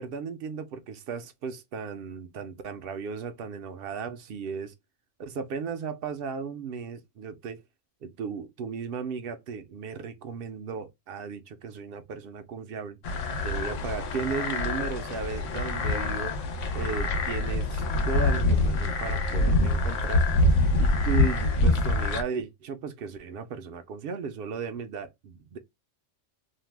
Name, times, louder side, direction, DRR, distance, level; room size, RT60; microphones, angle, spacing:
voice 1, 0.0-4.7 5.2-7.6 8.0-13.0 13.4-16.4 16.7-20.2 20.8-25.6, right 5 dB, 60° right, 0.6 m, -35 dB
elephantine island frogs, 13.0-22.2, left 2 dB, 85° left, 1.0 m, -25 dB
2.6 x 2.1 x 3.2 m
omnidirectional pair, 1.3 m